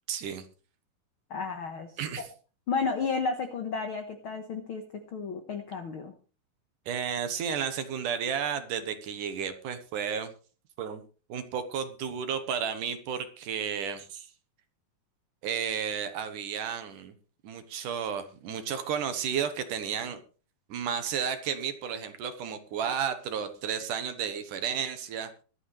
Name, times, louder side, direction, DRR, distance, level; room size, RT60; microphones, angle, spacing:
voice 1, 0.1-0.5 2.0-2.3 6.9-10.3 10.8-11.0 11.3-14.3 15.4-17.1 17.4-20.2 20.7-25.3, right 7 dB, 65° right, 9 dB, 2.5 m, -32 dB
voice 2, 1.3-1.9 2.2-2.3 2.7-6.1, left 5 dB, 75° left, 6 dB, 1.2 m, -32 dB
23.5 x 8.6 x 3.3 m, 0.36 s
omnidirectional pair, 4.3 m